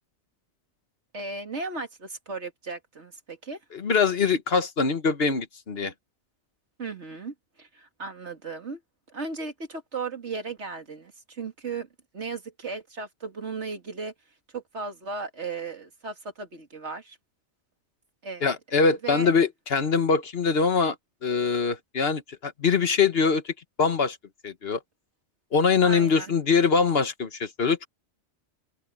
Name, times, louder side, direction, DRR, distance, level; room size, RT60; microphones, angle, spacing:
voice 1, 1.1-3.6 6.8-8.8 9.1-14.1 14.5-17.2 18.2-18.6 19.0-19.3 25.8-26.3, right 4 dB, 70° right, 2.7 m, -36 dB
voice 2, 3.7-5.9 18.4-21.0 21.2-23.5 23.8-24.2 24.4-24.8 25.5-27.9, left 5 dB, 55° left, 1.4 m, -23 dB
open air
omnidirectional pair, 1.2 m